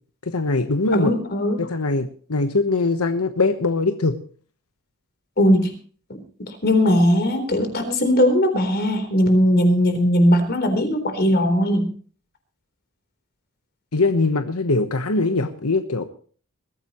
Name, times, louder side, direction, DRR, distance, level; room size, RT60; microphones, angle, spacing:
voice 1, 0.2-1.1 1.6-4.2 13.9-16.0, left 3 dB, 90° left, 8 dB, 1.1 m, -22 dB
voice 2, 0.9-1.6 5.4-5.7 6.1-11.9, equal, 50° left, 7 dB, 3.9 m, -19 dB
21.5 x 14.5 x 3.1 m, 0.43 s
head